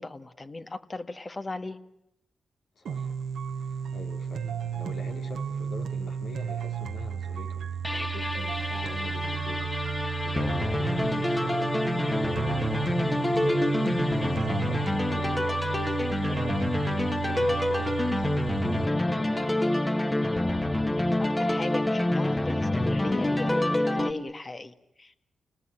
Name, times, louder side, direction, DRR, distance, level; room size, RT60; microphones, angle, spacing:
voice 1, 0.0-1.8 21.2-25.2, left 2 dB, 35° left, 8 dB, 1.8 m, -37 dB
voice 2, 2.8-3.2 3.5-12.4 13.0-16.6 17.1-19.9, left 3 dB, 70° left, 2 dB, 3.7 m, -44 dB
sound 1, 2.9-18.9, right 7 dB, 80° right, 1.2 m, -33 dB
sound 2, 7.8-24.1, left 1 dB, 20° left, 2.0 m, -27 dB
29.5 x 19.5 x 9.1 m, 0.83 s
supercardioid pair, 45°, 0 cm